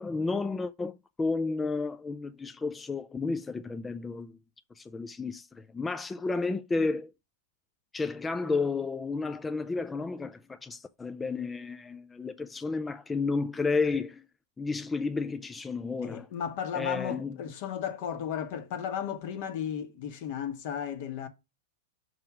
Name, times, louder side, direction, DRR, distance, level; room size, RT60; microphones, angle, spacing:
voice 1, 0.0-4.4 4.8-7.1 7.9-14.2 14.6-16.3 16.7-17.4, left 4 dB, 10° left, 0.3 m, -32 dB
voice 2, 16.0-21.3, left 8 dB, 55° left, 1.3 m, -34 dB
5.9 x 4.8 x 4.9 m
supercardioid pair, 145°, 0 cm